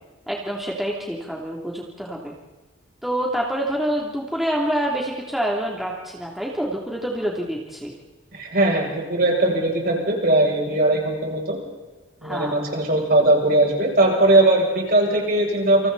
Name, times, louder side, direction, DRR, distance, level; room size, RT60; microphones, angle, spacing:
voice 1, 0.3-2.3 3.0-7.9 12.2-12.5, right 1 dB, ahead, -2 dB, 3.0 m, -27 dB
voice 2, 8.3-11.6 12.2-15.9, right 2 dB, 50° right, -1 dB, 7.5 m, -19 dB
29.5 x 27.5 x 4.2 m, 1.2 s
head